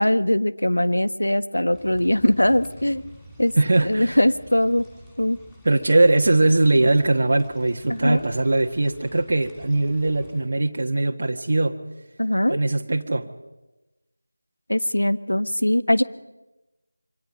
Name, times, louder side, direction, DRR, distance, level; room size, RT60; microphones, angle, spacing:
voice 1, 0.0-3.0 3.4-3.5 3.8-4.9 5.2-5.4 7.9-8.2 12.2-12.6 14.7-16.0, left 1 dB, 75° left, 12 dB, 1.4 m, -21 dB
sound 1, 1.7-10.4, equal, 5° left, 6.5 m, -48 dB
voice 2, 3.6-4.2 5.6-11.8 12.5-13.3, right 2 dB, 40° right, 2 dB, 1.5 m, -20 dB
27.0 x 25.0 x 5.4 m, 1.1 s
figure-of-eight pair, 165°, 0 cm